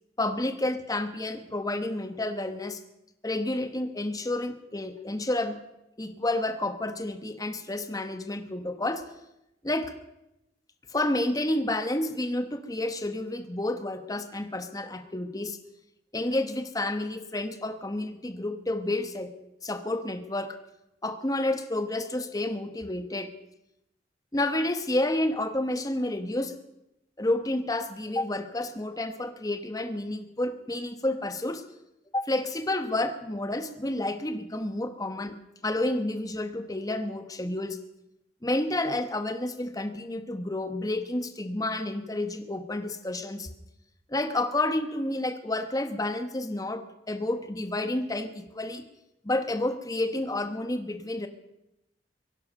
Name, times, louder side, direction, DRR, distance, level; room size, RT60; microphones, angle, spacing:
voice 1, 0.2-2.8 3.2-5.6 6.0-9.0 9.6-9.9 10.9-15.6 16.1-19.3 19.6-20.6 21.0-23.3 24.3-26.5 27.2-31.6 32.1-35.4 35.6-37.8 38.4-43.5 44.1-48.8 49.2-51.3, left 1 dB, 20° left, 8 dB, 1.0 m, -30 dB
23.0 x 11.5 x 5.3 m, 0.89 s
head